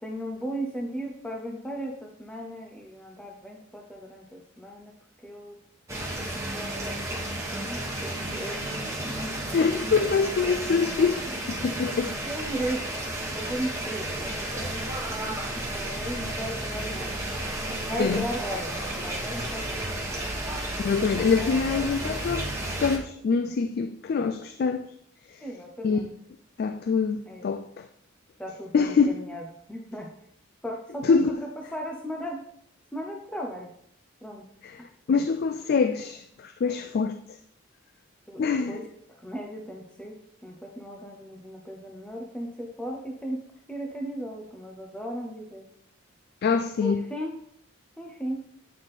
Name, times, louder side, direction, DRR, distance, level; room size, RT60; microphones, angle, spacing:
voice 1, 0.0-4.9 5.2-5.6 6.2-7.2 7.5-8.7 9.0-10.1 11.3-11.4 12.2-13.0 13.3-17.1 17.8-20.2 25.4-26.1 27.3-27.5 28.4-30.1 30.6-32.4 32.9-33.7 34.2-34.5 35.1-35.2 38.3-38.9 39.2-43.4 43.7-45.7 46.8-47.4 48.0-48.4, right 1 dB, 5° left, 0.6 m, -36 dB
sound 1, 5.9-23.0, right 1 dB, 15° right, 1.3 m, -32 dB
voice 2, 9.5-11.2 11.6-12.1 18.0-18.2 20.8-24.9 25.3-25.4 25.8-26.1 26.6-27.9 28.7-29.2 31.0-31.3 34.6-34.7 35.1-37.2 38.4-38.8 46.4-47.0, left 5 dB, 50° left, 0.3 m, -25 dB
8.6 x 3.5 x 4.1 m
head